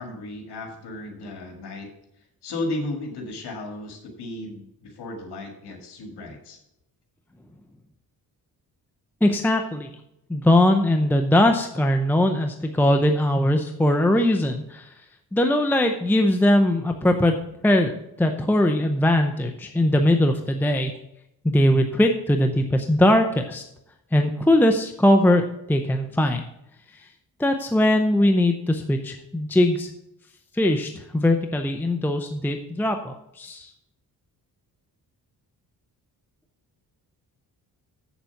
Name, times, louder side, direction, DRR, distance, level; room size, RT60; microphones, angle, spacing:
voice 1, 0.0-1.9 2.4-6.6, left 2 dB, 85° left, 3 dB, 2.0 m, -34 dB
voice 2, 9.2-9.9 10.3-14.9 15.3-17.4 17.6-17.9 18.2-20.9 21.4-23.6 24.1-25.4 25.7-26.4 27.4-29.9 30.5-33.7, left 1 dB, 5° left, 5 dB, 0.6 m, -20 dB
7.7 x 7.0 x 5.8 m, 0.82 s
cardioid pair, 115°, 39 cm